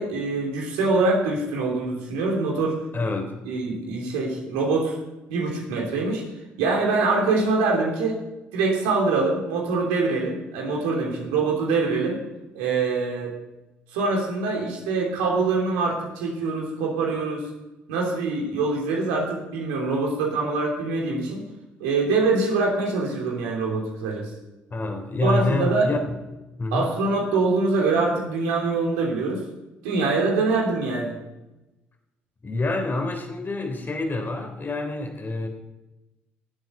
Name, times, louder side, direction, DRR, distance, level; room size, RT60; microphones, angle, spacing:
voice 1, 0.0-2.8 3.4-5.0 5.3-6.2 6.6-8.2 8.5-12.2 12.5-13.3 13.9-17.4 17.9-21.4 21.8-24.3 25.2-25.9 26.7-29.4 29.8-31.2, right 3 dB, 80° right, 0 dB, 3.2 m, -24 dB
voice 2, 2.9-3.3 24.7-26.2 26.6-26.9 32.4-35.5, left 2 dB, 35° left, 4 dB, 3.4 m, -27 dB
15.5 x 8.0 x 6.6 m, 0.99 s
hypercardioid pair, 50°, 6 cm